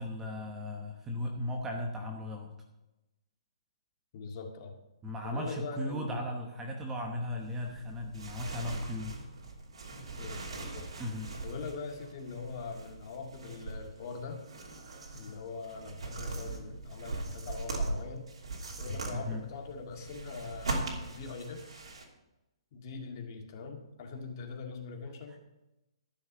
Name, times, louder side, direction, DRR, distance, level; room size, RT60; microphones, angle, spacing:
voice 1, 0.0-2.5 5.0-9.1 11.0-11.3 19.1-19.4 25.3-25.4, left 1 dB, 10° right, 1 dB, 1.0 m, -36 dB
voice 2, 4.1-4.8 5.2-6.2 10.2-10.9 11.4-14.4 15.1-18.3 18.8-21.8 22.7-25.4, left 4 dB, 35° left, 3 dB, 2.0 m, -42 dB
sound 1, 7.4-22.0, right 2 dB, 75° right, 3.0 m, -40 dB
13.0 x 6.5 x 6.7 m, 0.98 s
hypercardioid pair, 165°, 3 cm